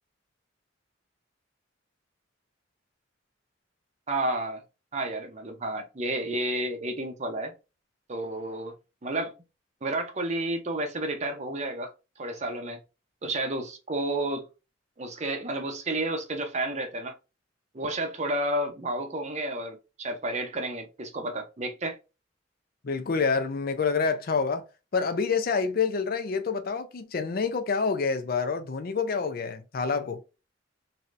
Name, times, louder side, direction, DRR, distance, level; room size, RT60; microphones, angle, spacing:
voice 1, 4.1-4.6 4.9-7.5 8.1-8.7 9.0-9.3 9.8-12.8 13.2-14.5 15.0-17.2 17.7-22.0, right 1 dB, 35° right, 0.6 m, -31 dB
voice 2, 22.8-24.6 24.9-30.2, left 5 dB, 50° left, 0.4 m, -27 dB
3.2 x 2.7 x 2.4 m
head